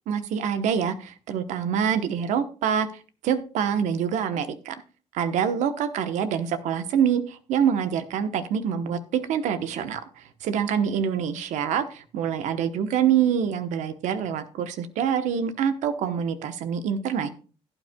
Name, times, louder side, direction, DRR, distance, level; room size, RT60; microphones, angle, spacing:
voice 1, 0.1-4.8 5.1-17.3, right 8 dB, 85° right, 11 dB, 0.9 m, -26 dB
16.0 x 8.9 x 2.2 m, 0.36 s
cardioid pair, 85°, 12 cm